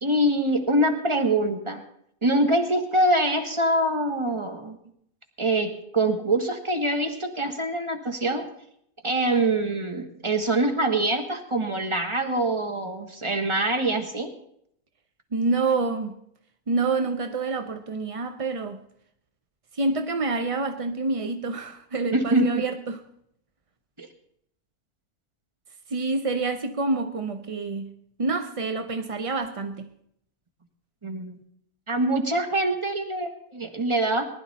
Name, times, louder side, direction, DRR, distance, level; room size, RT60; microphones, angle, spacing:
voice 1, 0.0-1.8 2.2-4.8 5.4-8.5 9.0-14.3 22.1-22.5 24.0-24.1 31.0-31.4 31.9-34.2, right 1 dB, 20° right, 1.4 m, -24 dB
voice 2, 15.3-16.2 16.7-18.8 19.7-23.0 25.9-29.9, right 3 dB, 50° right, 0.4 m, -27 dB
19.5 x 11.0 x 4.2 m
omnidirectional pair, 1.6 m